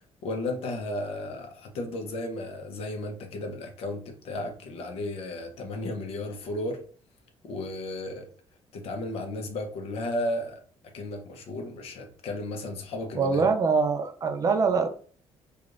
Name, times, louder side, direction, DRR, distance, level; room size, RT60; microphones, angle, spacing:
voice 1, 0.0-6.8 7.4-8.3 8.7-10.6 10.9-13.5, left 1 dB, 70° left, 4 dB, 0.9 m, -34 dB
voice 2, 13.1-14.9, right 5 dB, 35° right, 6 dB, 0.5 m, -24 dB
4.9 x 2.5 x 2.5 m, 0.43 s
cardioid pair, 150°, 11 cm